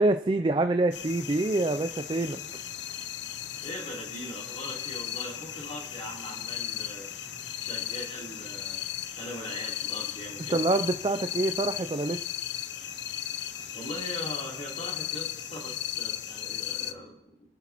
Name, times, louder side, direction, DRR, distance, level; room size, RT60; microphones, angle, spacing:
voice 1, 0.0-2.4 10.5-12.2, right 2 dB, 25° right, 8 dB, 0.4 m, -26 dB
sound 1, 0.9-16.9, left 11 dB, 80° left, 0.6 m, -36 dB
voice 2, 3.6-7.1 7.6-8.8 9.1-10.6 13.7-17.2, left 1 dB, 35° left, -4 dB, 3.4 m, -40 dB
25.5 x 9.9 x 3.0 m, 0.83 s
head